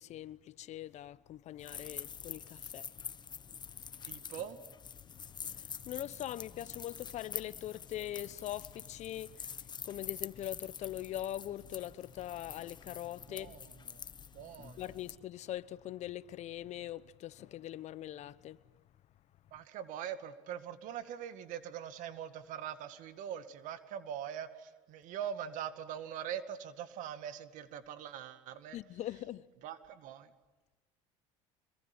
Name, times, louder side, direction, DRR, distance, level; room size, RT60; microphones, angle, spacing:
voice 1, 0.0-2.9 3.8-4.2 5.1-13.6 14.8-18.6 28.7-29.5, left 13 dB, 50° left, 1.0 m, -42 dB
sound 1, 1.6-15.2, left 7 dB, 30° left, 1.2 m, -46 dB
voice 2, 4.0-4.6 13.3-14.0 14.3-14.9 19.5-28.8 29.6-30.3, right 9 dB, 60° right, 2.2 m, -42 dB
26.5 x 22.5 x 9.6 m
supercardioid pair, 95°, 15 cm